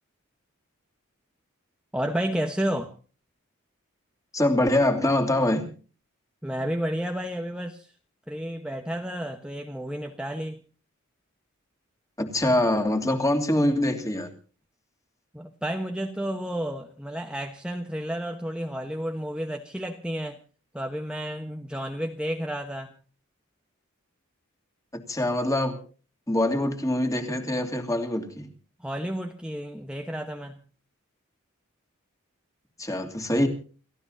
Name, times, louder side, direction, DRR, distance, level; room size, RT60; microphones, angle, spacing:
voice 1, 1.9-2.9 6.4-7.9 8.3-10.6 15.3-20.4 20.7-22.9 28.8-30.6, equal, 5° right, 1.2 m, -31 dB
voice 2, 4.3-5.7 12.2-14.3 24.9-25.8 26.3-28.5 32.8-33.5, left 1 dB, 15° left, 2.8 m, -24 dB
30.0 x 15.0 x 2.8 m
head